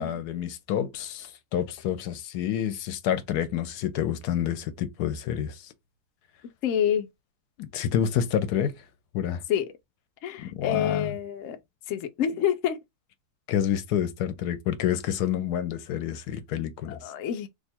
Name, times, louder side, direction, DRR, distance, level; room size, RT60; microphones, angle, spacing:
voice 1, 0.0-5.6 7.6-8.7 9.1-9.4 10.4-11.1 13.5-17.0, left 9 dB, 90° left, 1.2 m, -28 dB
voice 2, 6.6-7.1 9.5-9.7 10.2-11.6 11.9-12.8 16.9-17.5, left 9 dB, 65° left, 0.9 m, -27 dB
2.8 x 2.4 x 4.2 m
omnidirectional pair, 1.7 m